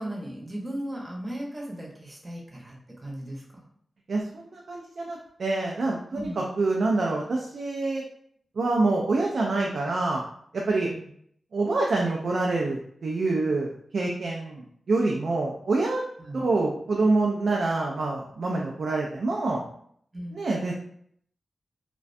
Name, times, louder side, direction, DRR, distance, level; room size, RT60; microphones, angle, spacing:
voice 1, 0.0-3.6 6.1-6.4 10.8-11.1 16.2-16.4 20.1-20.4, right 1 dB, 25° right, -3 dB, 0.7 m, -37 dB
voice 2, 4.1-8.0 8.6-10.2 10.5-10.9 11.5-16.0 16.3-19.7 20.3-20.7, right 3 dB, 70° right, -1 dB, 0.3 m, -26 dB
2.3 x 2.1 x 2.5 m, 0.66 s
cardioid pair, 40°, 0 cm